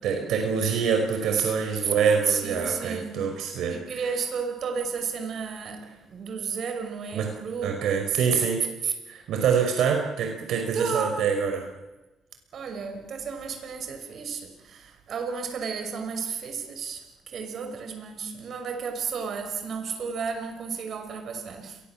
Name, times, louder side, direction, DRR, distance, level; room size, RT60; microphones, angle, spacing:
voice 1, 0.0-4.0 7.1-7.3 7.6-8.6 9.1-11.6, right 6 dB, 80° right, 3 dB, 5.2 m, -25 dB
voice 2, 2.3-3.2 3.7-7.8 8.8-8.9 10.7-11.2 12.5-21.8, right 6 dB, 60° right, 6 dB, 6.1 m, -32 dB
30.0 x 23.0 x 7.5 m, 1.1 s
cardioid pair, 90°, 0 cm